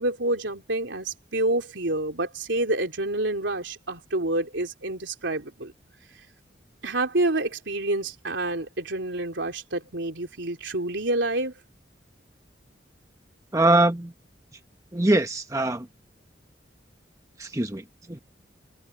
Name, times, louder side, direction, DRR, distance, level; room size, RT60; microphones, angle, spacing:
voice 1, 0.0-5.7 6.8-11.5, right 2 dB, 80° right, 3.3 m, -28 dB
voice 2, 13.5-14.1 14.9-15.9 17.4-18.2, right 2 dB, 15° right, 1.0 m, -23 dB
head